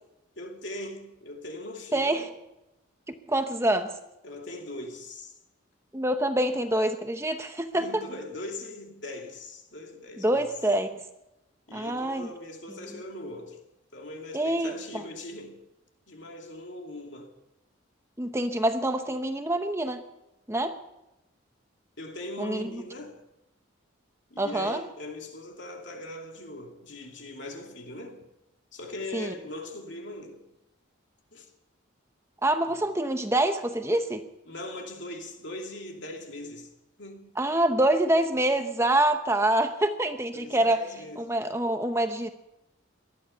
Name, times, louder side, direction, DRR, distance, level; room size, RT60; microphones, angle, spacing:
voice 1, 0.4-2.3 4.2-5.3 7.7-10.5 11.7-13.6 13.9-15.6 16.1-17.3 22.0-23.2 24.3-28.2 28.7-30.5 31.3-31.5 32.6-32.8 34.5-36.7 37.0-37.4 40.3-41.2, left 1 dB, 60° left, 2.6 m, -40 dB
voice 2, 1.9-2.3 3.3-3.9 5.9-8.0 10.2-11.0 11.7-12.3 12.9-13.0 14.3-15.0 18.2-20.0 20.5-20.8 22.4-22.8 24.4-24.8 29.1-29.3 32.4-34.3 37.4-40.8 41.2-42.3, right 1 dB, 15° right, 0.8 m, -26 dB
19.0 x 13.0 x 5.6 m
head